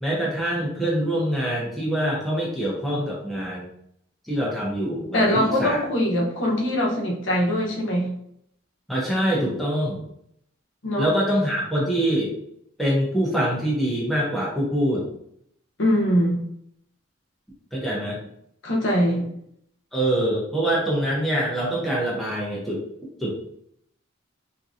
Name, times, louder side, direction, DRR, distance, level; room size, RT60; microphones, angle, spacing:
voice 1, 0.0-3.7 4.2-5.8 8.9-10.0 11.0-12.3 12.8-15.1 17.7-18.2 19.9-22.8 23.2-23.4, right 1 dB, ahead, -5 dB, 0.8 m, -24 dB
voice 2, 5.1-8.1 10.8-11.1 15.8-16.4 18.6-19.3, equal, 70° left, -2 dB, 0.9 m, -22 dB
3.7 x 2.8 x 2.5 m, 0.73 s
head